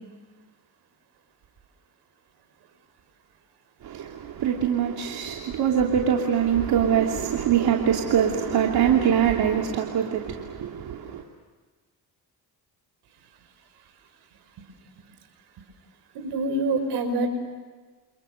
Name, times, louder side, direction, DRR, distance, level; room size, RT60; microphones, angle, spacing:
voice 1, 3.8-11.2, right 8 dB, 70° right, 1 dB, 3.0 m, -23 dB
voice 2, 16.1-17.3, right 2 dB, 85° right, 8 dB, 5.6 m, -25 dB
29.0 x 29.0 x 6.8 m, 1.4 s
cardioid pair, 110°, 39 cm